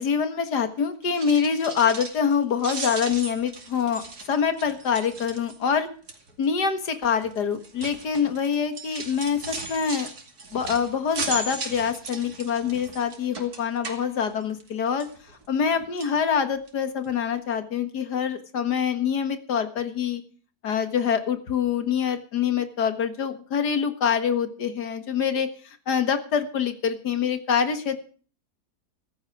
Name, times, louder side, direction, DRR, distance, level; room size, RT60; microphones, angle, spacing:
voice 1, 0.0-4.0 4.3-5.9 6.4-10.1 10.5-15.1 15.5-20.2 20.6-28.0, left 7 dB, 90° left, 8 dB, 2.2 m, -25 dB
sound 1, 1.0-2.3 2.6-5.7 6.1-6.4 7.2-14.7 15.0-15.7 16.0-16.2 16.7-16.8 17.0-17.1, right 3 dB, 70° right, 3.0 m, -37 dB
15.0 x 15.0 x 4.8 m, 0.40 s
omnidirectional pair, 1.7 m